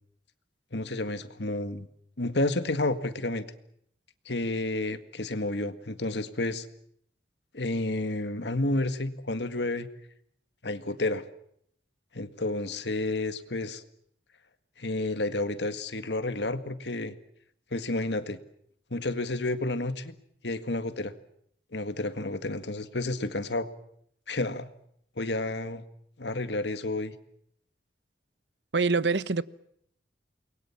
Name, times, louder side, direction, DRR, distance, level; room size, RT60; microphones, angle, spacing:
voice 1, 0.7-1.9 2.2-3.4 4.3-6.7 7.5-9.9 10.6-11.2 12.1-13.8 14.8-17.1 17.7-18.4 18.9-20.2 20.4-21.1 21.7-23.7 24.3-24.7 25.2-25.8 26.2-27.1, left 2 dB, 80° left, 1.9 m, -30 dB
voice 2, 28.7-29.4, right 4 dB, 85° right, 0.9 m, -25 dB
29.0 x 22.5 x 7.2 m
head